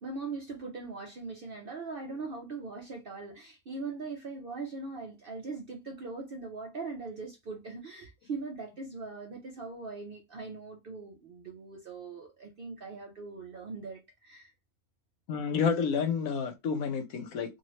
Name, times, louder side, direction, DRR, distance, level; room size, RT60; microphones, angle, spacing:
voice 1, 0.0-14.5, right 4 dB, 55° right, 0.6 m, -41 dB
voice 2, 15.3-17.6, left 6 dB, 75° left, 1.0 m, -30 dB
2.9 x 2.7 x 3.0 m
omnidirectional pair, 1.5 m